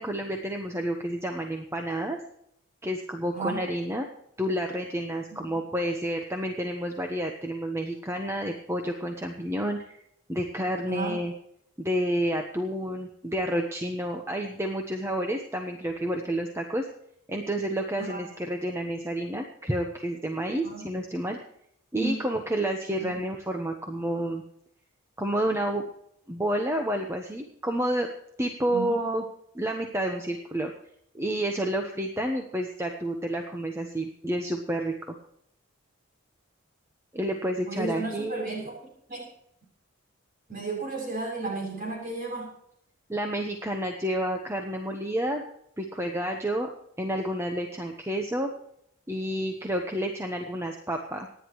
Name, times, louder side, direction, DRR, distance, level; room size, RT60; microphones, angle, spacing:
voice 1, 0.0-2.2 2.8-4.1 4.4-10.0 10.3-11.3 11.8-16.9 17.3-21.4 21.9-24.4 25.2-25.8 26.3-28.1 28.4-29.2 29.5-30.7 31.1-35.1 37.1-38.6 43.1-45.4 45.8-46.7 47.0-48.5 49.1-51.3, right 1 dB, 10° right, 3 dB, 1.0 m, -30 dB
voice 2, 10.8-11.2 18.0-18.2 20.6-20.9 21.9-22.2 23.0-23.1 28.7-28.9 37.7-38.7 39.1-39.3 40.5-42.5, right 3 dB, 40° right, -2 dB, 7.4 m, -33 dB
26.5 x 10.0 x 3.1 m, 0.74 s
head